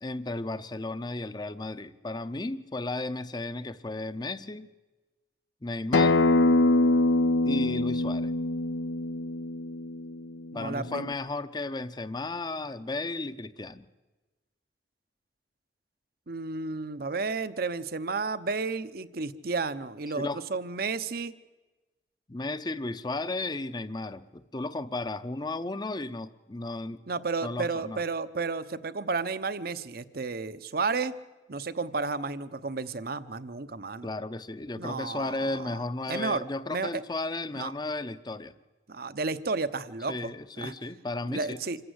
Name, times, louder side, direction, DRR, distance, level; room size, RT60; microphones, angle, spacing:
voice 1, 0.0-4.7 5.6-6.2 7.5-8.3 10.5-13.9 20.1-20.4 22.3-27.0 27.4-28.0 34.0-38.5 40.1-41.6, left 2 dB, 25° left, 14 dB, 0.7 m, -34 dB
Acoustic guitar, 5.9-11.1, left 2 dB, 85° left, 0.7 m, -24 dB
voice 2, 10.5-11.1 16.3-21.3 27.1-31.1 31.5-34.1 34.8-35.7 36.1-37.0 37.5-37.7 38.9-40.3 40.6-40.7 41.3-41.8, right 4 dB, 55° right, 14 dB, 0.8 m, -32 dB
26.5 x 14.5 x 8.0 m, 1.2 s
head